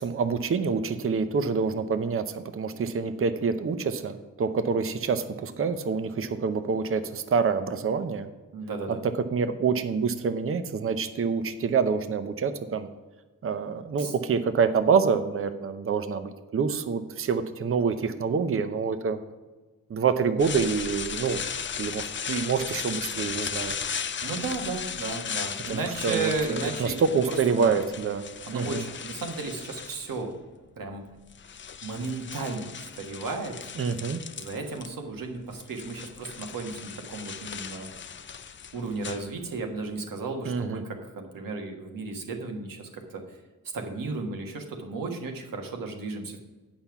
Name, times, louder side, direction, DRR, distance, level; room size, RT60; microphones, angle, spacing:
voice 1, 0.0-8.3 9.0-12.9 13.4-19.2 19.9-21.4 21.8-23.8 25.7-28.2 28.5-28.8 33.8-34.2 40.5-40.8, right 5 dB, 40° right, 10 dB, 0.7 m, -27 dB
voice 2, 8.5-9.0 14.0-14.1 24.2-27.0 27.3-27.8 28.5-30.3 30.8-31.0 31.8-33.5 34.4-37.9 38.7-43.4 43.7-46.4, right 3 dB, 80° right, 3 dB, 1.6 m, -34 dB
sound 1, 20.4-30.3 31.1-34.9 35.2-39.8, left 7 dB, 35° left, 0.5 m, -36 dB
8.7 x 5.7 x 5.9 m, 1.3 s
wide cardioid pair, 110°, 33 cm